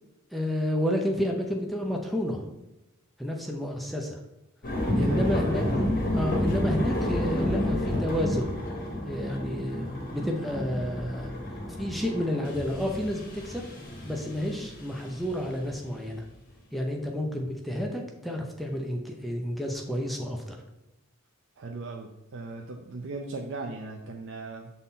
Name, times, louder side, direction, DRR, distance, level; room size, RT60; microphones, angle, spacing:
voice 1, 0.3-2.5 3.2-4.2 5.0-5.6 6.1-8.5 9.0-11.3 11.7-13.6 14.0-16.2 16.7-20.6, left 1 dB, ahead, 0 dB, 0.6 m, -30 dB
sound 1, 4.6-16.2, left 1 dB, 40° left, 1.5 m, -30 dB
voice 2, 4.8-5.6 21.6-24.7, right 3 dB, 60° right, 3 dB, 0.5 m, -38 dB
7.1 x 4.1 x 3.8 m, 0.94 s
head